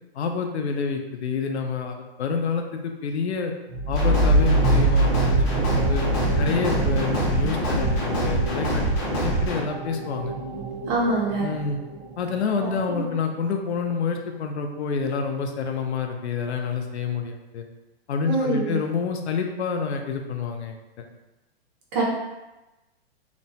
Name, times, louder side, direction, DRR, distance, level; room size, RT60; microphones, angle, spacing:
voice 1, 0.2-3.5 3.9-6.0 6.4-8.8 9.2-10.3 11.4-11.8 12.2-17.7 18.1-20.8, left 5 dB, 85° left, 4 dB, 0.5 m, -28 dB
sound 1, 3.7-13.1, right 2 dB, 75° right, 1.0 m, -26 dB
sound 2, 3.9-9.6, right 1 dB, 25° left, 0.6 m, -25 dB
voice 2, 10.9-11.5 12.9-13.0 18.3-18.8 21.9-22.0, right 2 dB, 20° right, -4 dB, 0.4 m, -24 dB
2.9 x 2.1 x 2.7 m, 1.0 s
hypercardioid pair, 145°, 32 cm